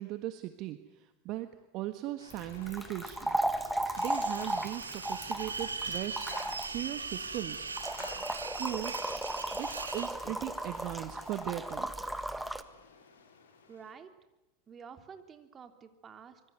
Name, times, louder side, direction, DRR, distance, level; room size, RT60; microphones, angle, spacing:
voice 1, 0.0-1.5 1.7-3.4 4.0-6.3 6.6-7.7 8.6-8.9 9.5-11.9, right 15 dB, 50° right, 10 dB, 1.5 m, -38 dB
sound 1, 2.2-13.9, left 5 dB, 75° left, 6.6 m, -53 dB
sound 2, 2.3-12.6, right 1 dB, 5° right, 1.6 m, -36 dB
sound 3, 4.0-10.1, right 4 dB, 90° right, 2.0 m, -40 dB
voice 2, 13.7-14.1 14.7-16.4, right 6 dB, 30° right, 8 dB, 3.3 m, -50 dB
25.5 x 23.5 x 9.4 m, 0.96 s
hypercardioid pair, 85°, 0 cm